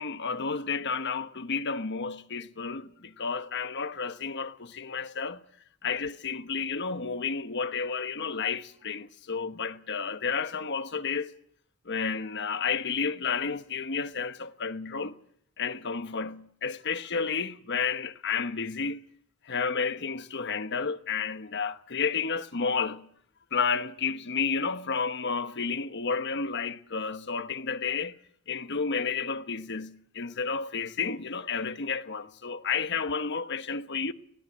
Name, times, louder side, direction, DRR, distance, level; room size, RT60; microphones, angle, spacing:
voice 1, 0.0-5.4 5.8-11.3 11.8-15.2 15.6-19.0 19.4-23.1 23.5-28.2 28.5-34.1, left 5 dB, 55° left, 1.1 m, -31 dB
23.5 x 17.0 x 8.6 m
head